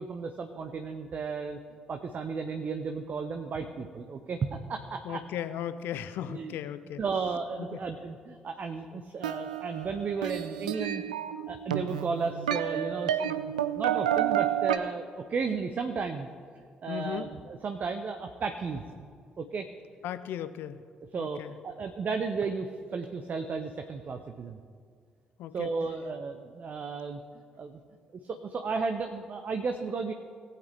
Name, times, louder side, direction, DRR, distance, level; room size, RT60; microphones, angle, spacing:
voice 1, 0.0-1.6 1.9-5.2 6.3-6.5 7.0-11.0 11.5-13.4 13.7-16.3 16.8-19.1 19.4-19.7 21.1-24.6 25.5-27.2 27.6-27.8 28.2-30.1, right 4 dB, 45° right, 6 dB, 0.7 m, -34 dB
voice 2, 5.0-7.0 7.6-7.8 16.9-17.3 20.0-20.8 21.2-21.5 25.4-25.7, left 10 dB, 60° left, 13 dB, 0.5 m, -36 dB
sound 1, 9.2-14.8, right 10 dB, 80° right, 0.3 m, -30 dB
18.5 x 8.4 x 3.5 m, 2.1 s
figure-of-eight pair, 40°, 4 cm